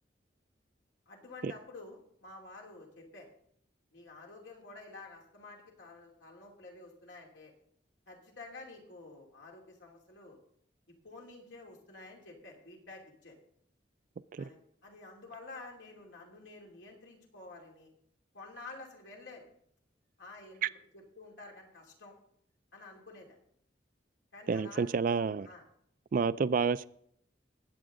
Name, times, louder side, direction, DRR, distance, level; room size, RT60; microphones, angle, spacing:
voice 1, 1.1-3.3 3.9-7.5 8.1-10.4 11.0-13.3 14.4-17.9 18.3-19.5 20.2-22.1 22.7-23.4 24.3-24.9 25.4-25.6, left 3 dB, 90° left, 0 dB, 2.8 m, -50 dB
voice 2, 24.5-25.5 26.1-26.9, right 5 dB, 50° right, 17 dB, 0.3 m, -29 dB
20.0 x 7.8 x 3.8 m, 0.69 s
head